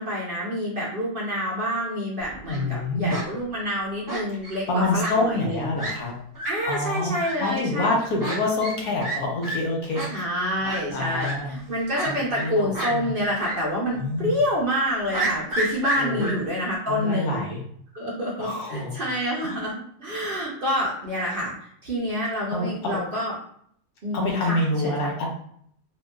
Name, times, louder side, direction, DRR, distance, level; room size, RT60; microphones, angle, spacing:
voice 1, 0.0-5.7 6.4-7.9 10.1-17.4 17.9-19.7 20.0-23.3 24.0-25.1, equal, 65° right, -4 dB, 0.5 m, -27 dB
Fowl, 2.2-2.6 3.1-3.2 4.1-4.6 5.0-5.1 5.4-5.5 5.8-5.9 6.3-6.5 7.2-7.3 8.2-8.4 8.6-8.8 9.0-9.2 9.4-9.6 9.9-10.1 10.6-10.8 11.2-11.3 11.9-12.5 12.7-12.9 13.4-13.5 13.9-14.0 15.1-16.3, right 2 dB, 15° right, 0.7 m, -29 dB
voice 2, 2.5-3.2 4.7-6.1 6.6-10.3 10.9-11.5 12.1-13.1 13.9-14.4 16.0-16.3 16.9-17.6 18.4-18.9 19.4-19.6 22.5-23.0 24.1-25.3, left 2 dB, 70° left, 0 dB, 1.2 m, -27 dB
2.9 x 2.7 x 2.2 m, 0.65 s
omnidirectional pair, 1.7 m